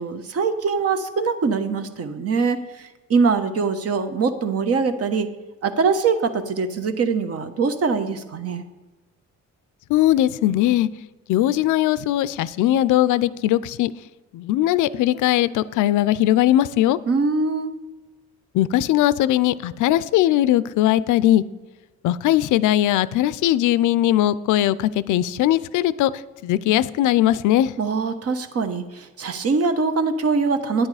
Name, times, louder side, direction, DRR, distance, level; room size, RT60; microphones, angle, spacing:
voice 1, 0.0-5.3 5.6-8.6 17.1-17.7 27.8-30.9, right 4 dB, 55° right, 9 dB, 1.0 m, -23 dB
voice 2, 9.9-10.9 11.3-13.9 14.3-17.0 18.5-21.4 22.0-26.1 26.4-27.7, left 13 dB, 80° left, 18 dB, 0.5 m, -19 dB
10.0 x 8.9 x 4.9 m, 1.2 s
cardioid pair, 90°, 30 cm